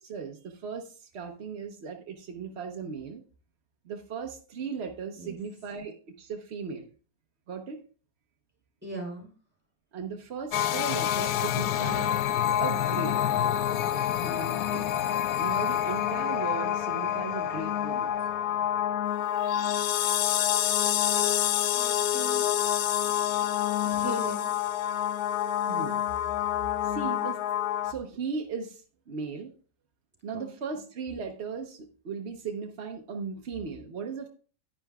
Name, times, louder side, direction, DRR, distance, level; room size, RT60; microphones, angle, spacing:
voice 1, 0.0-3.2 3.8-6.9 7.5-7.8 9.9-12.1 12.6-13.2 14.2-14.9 15.4-18.1 25.7-26.0 26.8-27.4 27.8-29.5 30.2-34.3, right 5 dB, 50° right, 3 dB, 0.8 m, -37 dB
voice 2, 8.8-9.3 19.5-19.8 21.7-22.4 23.8-24.5 30.3-30.5, right 1 dB, 5° right, 0 dB, 3.3 m, -39 dB
sound 1, 10.5-27.9, left 11 dB, 70° left, 0.9 m, -27 dB
10.0 x 10.0 x 2.3 m, 0.38 s
omnidirectional pair, 1.9 m